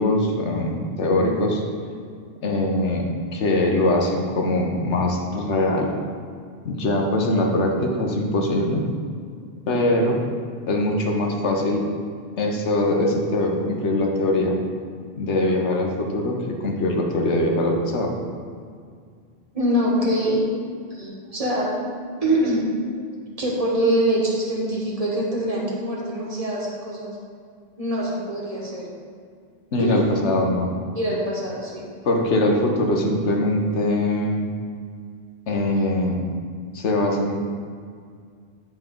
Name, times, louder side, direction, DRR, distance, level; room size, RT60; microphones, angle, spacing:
voice 1, 0.0-1.6 2.4-3.0 3.3-5.9 6.6-8.8 9.7-10.2 10.7-11.8 12.4-14.5 15.2-18.1 29.7-30.7 32.0-34.5 35.5-36.2 36.7-37.4, left 1 dB, 85° left, 1 dB, 1.3 m, -22 dB
voice 2, 9.7-10.0 19.5-20.4 20.9-22.7 23.4-27.2 27.8-28.9 29.8-30.1 30.9-31.9, right 1 dB, 30° right, -4 dB, 1.5 m, -24 dB
9.0 x 5.9 x 3.8 m, 2.1 s
omnidirectional pair, 1.2 m